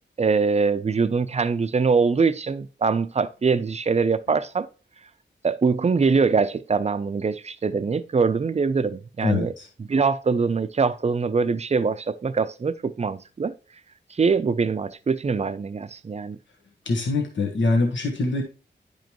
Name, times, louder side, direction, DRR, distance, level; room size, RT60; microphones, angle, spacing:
voice 1, 0.2-4.7 5.4-9.5 9.9-13.5 14.1-16.4, right 5 dB, 35° right, 0.5 m, -23 dB
voice 2, 9.2-9.7 16.8-18.4, left 3 dB, 80° left, 1.3 m, -23 dB
10.0 x 5.2 x 3.0 m
wide cardioid pair, 120°, 19 cm